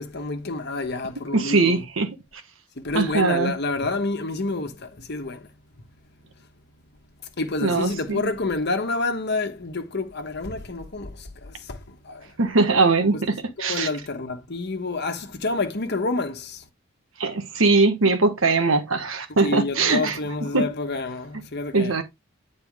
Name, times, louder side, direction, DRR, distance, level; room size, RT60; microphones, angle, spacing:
voice 1, 0.0-1.8 2.8-5.5 7.4-12.3 13.1-13.2 13.6-16.6 19.4-22.0, left 3 dB, 55° left, 1.2 m, -28 dB
voice 2, 1.3-2.1 2.9-3.5 7.6-8.3 12.4-13.9 17.2-20.2 20.5-20.7 21.7-22.0, right 3 dB, 70° right, 1.3 m, -21 dB
9.2 x 4.4 x 3.6 m
head